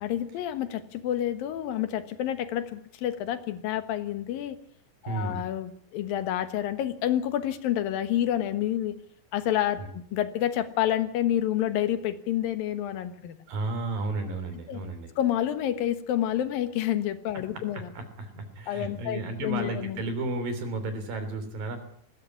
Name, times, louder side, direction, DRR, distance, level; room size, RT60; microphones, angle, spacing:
voice 1, 0.0-4.6 5.0-9.0 9.3-13.4 14.7-14.8 15.2-17.9 18.7-20.0, left 11 dB, 80° left, 11 dB, 3.1 m, -29 dB
voice 2, 5.0-5.4 9.8-9.9 13.5-15.1 17.5-21.8, right 2 dB, 75° right, 9 dB, 5.0 m, -33 dB
19.5 x 16.0 x 9.7 m, 0.63 s
omnidirectional pair, 4.1 m